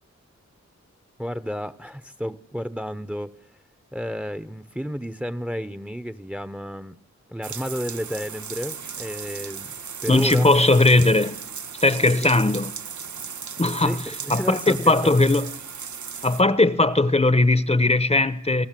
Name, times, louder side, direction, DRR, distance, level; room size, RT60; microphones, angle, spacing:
voice 1, 1.2-3.3 3.9-7.0 7.3-9.7 10.0-10.5 12.0-12.3 13.8-15.2, equal, 5° right, 0.9 m, -31 dB
sound 1, 7.4-16.4, right 6 dB, 80° right, 1.0 m, -36 dB
voice 2, 10.1-11.4 11.8-12.7 13.6-13.9 14.3-15.5 16.2-18.7, left 2 dB, 20° left, 1.0 m, -19 dB
29.0 x 19.0 x 7.6 m
wide cardioid pair, 75°, 29 cm